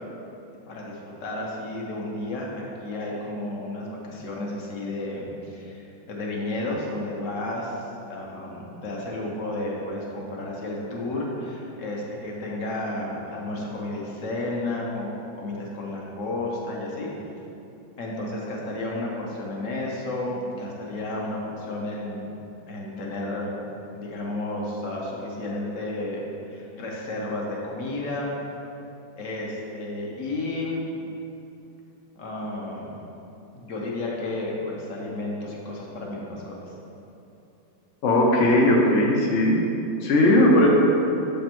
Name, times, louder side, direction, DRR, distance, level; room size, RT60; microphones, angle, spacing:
voice 1, 0.7-15.1 15.3-17.1 18.0-22.4 22.7-28.3 29.2-30.8 32.1-32.9 33.5-36.7, left 2 dB, 55° left, -2 dB, 1.0 m, -32 dB
voice 2, 38.0-39.6 40.0-40.7, left 1 dB, 75° left, -2 dB, 0.6 m, -18 dB
6.9 x 5.2 x 2.9 m, 2.9 s
omnidirectional pair, 2.1 m